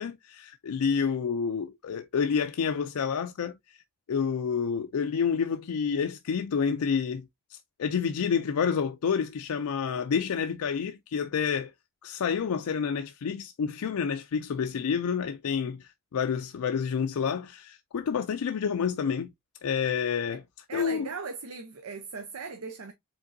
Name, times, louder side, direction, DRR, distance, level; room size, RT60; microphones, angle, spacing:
voice 1, 0.0-3.8 4.1-11.7 12.0-19.3 19.6-20.4 20.7-21.1, left 6 dB, 90° left, 0.4 m, -29 dB
voice 2, 20.7-22.9, right 4 dB, 85° right, 0.7 m, -38 dB
5.1 x 3.7 x 2.6 m
head